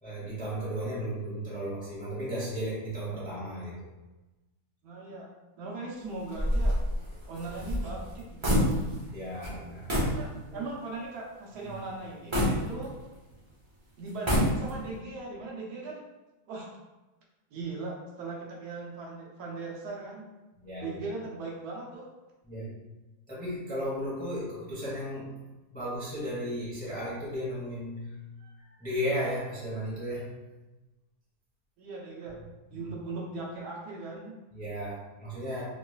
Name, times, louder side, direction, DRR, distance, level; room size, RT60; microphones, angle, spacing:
voice 1, 0.0-3.7 9.1-10.0 10.5-10.7 11.6-11.7 20.6-21.0 22.5-22.7 23.3-25.3 25.7-28.1 28.4-28.5 28.8-30.3 32.7-32.9 34.5-35.6, equal, 10° left, -8 dB, 0.7 m, -35 dB
voice 2, 4.8-5.3 5.6-6.8 7.3-8.6 10.1-12.9 14.0-16.0 16.5-16.7 17.5-20.3 20.8-22.0 31.8-32.4 32.7-34.3, right 3 dB, 75° right, -3 dB, 1.2 m, -39 dB
sound 1, 6.3-9.1 9.4-9.6 9.9-10.2 10.7-10.8 12.3-13.3 14.1-14.9, equal, 40° right, 0.4 m, -27 dB
3.1 x 3.0 x 2.3 m, 1.1 s
omnidirectional pair, 1.7 m